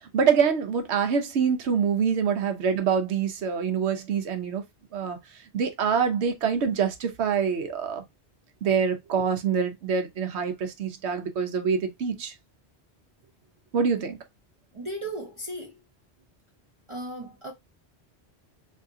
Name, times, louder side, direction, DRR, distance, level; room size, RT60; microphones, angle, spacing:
voice 1, 0.1-4.6 4.9-5.2 5.5-8.0 8.6-12.3 13.7-14.2, right 6 dB, 85° right, 1.0 m, -25 dB
voice 2, 14.7-15.8 16.9-17.5, right 1 dB, 35° right, 0.6 m, -36 dB
3.5 x 2.8 x 2.6 m
omnidirectional pair, 1.1 m